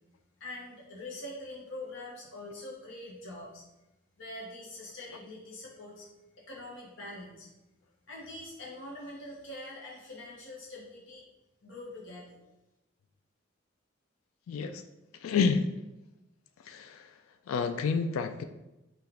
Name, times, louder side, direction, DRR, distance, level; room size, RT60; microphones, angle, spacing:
voice 1, 0.4-3.6 4.2-6.1 6.4-7.5 8.1-11.2 11.6-12.4, left 1 dB, 65° left, -4 dB, 0.9 m, -44 dB
voice 2, 14.5-14.8 15.2-15.7 16.7-17.1 17.5-18.4, left 5 dB, 85° left, 8 dB, 0.3 m, -29 dB
5.8 x 2.4 x 3.3 m, 0.95 s
head